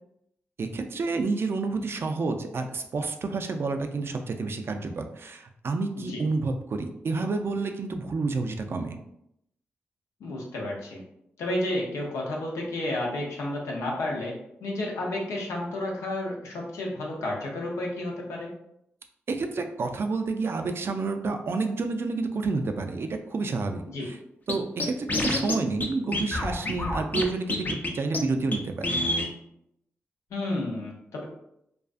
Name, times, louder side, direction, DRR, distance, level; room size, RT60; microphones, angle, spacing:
voice 1, 0.6-9.0 19.3-24.2 24.5-29.0, right 3 dB, 55° right, 6 dB, 0.3 m, -29 dB
voice 2, 10.2-11.0 11.4-18.5 23.9-24.1 30.3-31.2, left 1 dB, 85° left, -1 dB, 0.6 m, -31 dB
Scratching (performance technique), 24.5-24.6 24.8-25.5 25.8-25.9 26.1-27.2 27.5-27.9 28.1-28.2 28.5-28.6 28.8-29.3, left 2 dB, 35° left, 0.5 m, -27 dB
2.4 x 2.4 x 2.4 m, 0.77 s
supercardioid pair, 50°, 5 cm